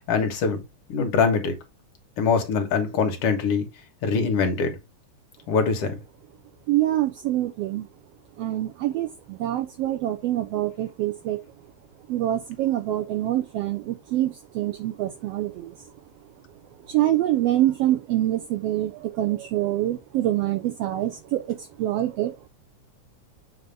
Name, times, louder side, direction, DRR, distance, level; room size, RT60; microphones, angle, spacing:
voice 1, 0.1-0.6 0.9-1.6 2.2-3.7 4.0-4.8 5.5-6.0, left 5 dB, 60° left, 2.2 m, -23 dB
voice 2, 6.7-7.9 8.4-11.4 12.1-15.7 16.9-22.5, right 14 dB, 75° right, 1.5 m, -25 dB
7.7 x 2.8 x 5.3 m
omnidirectional pair, 3.4 m